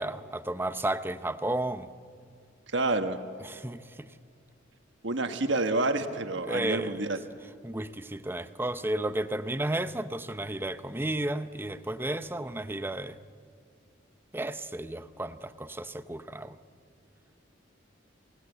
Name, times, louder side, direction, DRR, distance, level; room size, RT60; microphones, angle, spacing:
voice 1, 0.0-1.9 3.4-3.8 6.4-7.1 7.6-13.2 14.3-16.6, right 1 dB, 10° right, 12 dB, 0.7 m, -33 dB
voice 2, 2.7-3.2 5.0-7.2, right 2 dB, 70° right, 7 dB, 1.3 m, -28 dB
27.5 x 18.5 x 8.0 m, 2.2 s
head